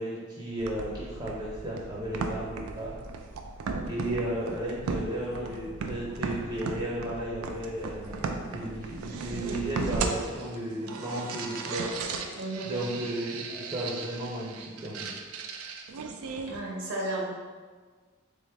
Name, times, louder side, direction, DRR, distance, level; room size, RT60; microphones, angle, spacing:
voice 1, 0.0-3.0 3.9-11.9 12.6-15.1, right 1 dB, 25° right, -5 dB, 0.6 m, -34 dB
sound 1, 0.6-16.6, right 4 dB, 85° right, 0.4 m, -36 dB
voice 2, 12.3-12.7 16.5-17.3, right 1 dB, 65° right, -3 dB, 0.9 m, -33 dB
3.5 x 3.5 x 3.4 m, 1.5 s
head